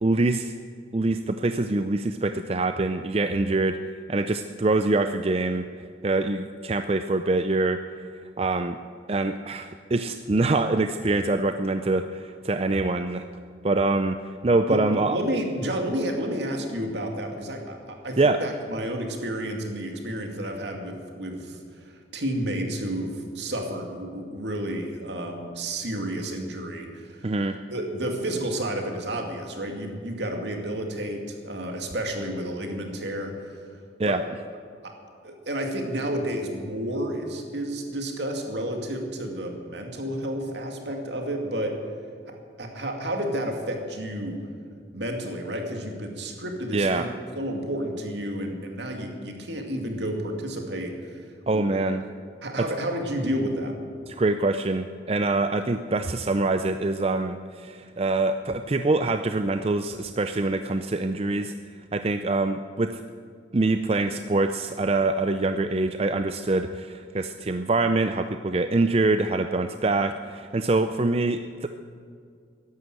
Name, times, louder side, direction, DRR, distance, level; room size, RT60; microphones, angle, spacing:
voice 1, 0.0-0.5 0.9-3.8 4.1-5.7 6.0-7.8 8.4-8.8 9.1-13.2 13.6-15.2 18.2-18.4 27.2-27.6 34.0-34.2 46.7-47.1 51.5-52.0 54.1-61.5 61.9-63.0 63.5-71.7, right 2 dB, 30° right, 8 dB, 0.5 m, -24 dB
voice 2, 14.7-27.3 27.7-33.6 34.1-34.2 34.8-34.9 35.2-41.7 42.3-44.4 44.9-47.1 47.4-51.2 51.5-51.6 52.4-53.7, right 1 dB, 70° right, 3 dB, 2.4 m, -31 dB
14.0 x 11.5 x 9.0 m, 2.2 s
head